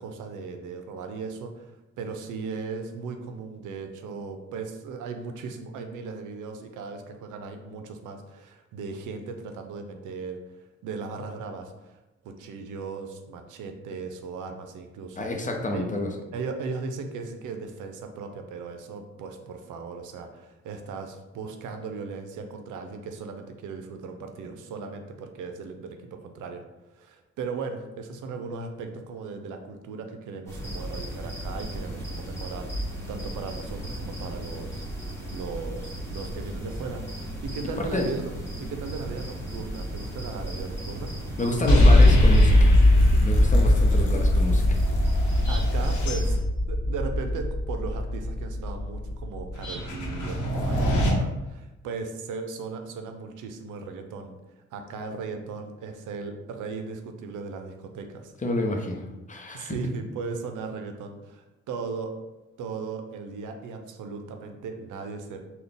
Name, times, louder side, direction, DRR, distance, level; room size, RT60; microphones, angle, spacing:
voice 1, 0.0-12.0 12.2-15.3 15.7-15.9 16.3-26.6 26.9-34.8 35.3-38.3 38.6-41.1 45.5-46.4 46.7-54.3 54.7-58.3 59.5-62.1 62.6-65.4, right 4 dB, 85° right, 5 dB, 0.5 m, -37 dB
voice 2, 15.2-16.1 37.8-38.1 41.4-42.8 43.2-44.8 58.4-59.8, left 1 dB, 25° left, 2 dB, 0.7 m, -29 dB
sound 1, 30.5-46.4, right 1 dB, 10° left, 1.3 m, -36 dB
sound 2, 41.7-51.1, left 1 dB, 80° left, 0.9 m, -20 dB
3.8 x 2.3 x 3.4 m, 1.0 s
cardioid pair, 75°, 30 cm